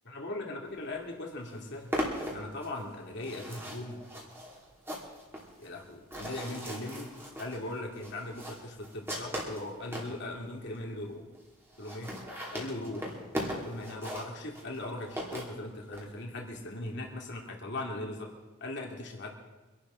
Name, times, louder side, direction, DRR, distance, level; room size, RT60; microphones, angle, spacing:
voice 1, 0.0-1.9 2.3-4.0 5.6-7.1 7.4-11.2 11.8-12.1 12.5-13.1 13.6-18.3 18.6-19.3, left 1 dB, 50° left, 0 dB, 2.6 m, -39 dB
sound 1, 0.9-1.0 1.3-10.1 10.7-10.8 11.0-11.1 11.3-11.4 11.7-16.1, equal, 10° right, 2.9 m, -39 dB
25.0 x 11.5 x 3.9 m, 1.2 s
head